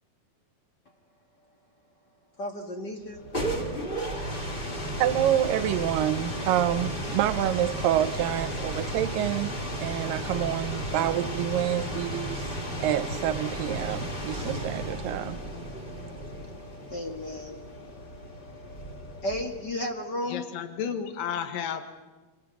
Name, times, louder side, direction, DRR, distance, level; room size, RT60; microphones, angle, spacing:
voice 1, 2.4-3.2 16.9-17.6 19.2-20.4, left 1 dB, 45° left, 1.5 m, -33 dB
sound 1, 3.0-19.8, right 1 dB, 15° left, 2.0 m, -34 dB
voice 2, 5.0-9.5 9.8-12.4 12.8-15.4, right 11 dB, 70° right, 2.5 m, -27 dB
voice 3, 20.3-22.0, left 8 dB, 65° left, 3.2 m, -32 dB
30.0 x 27.0 x 6.2 m
omnidirectional pair, 4.4 m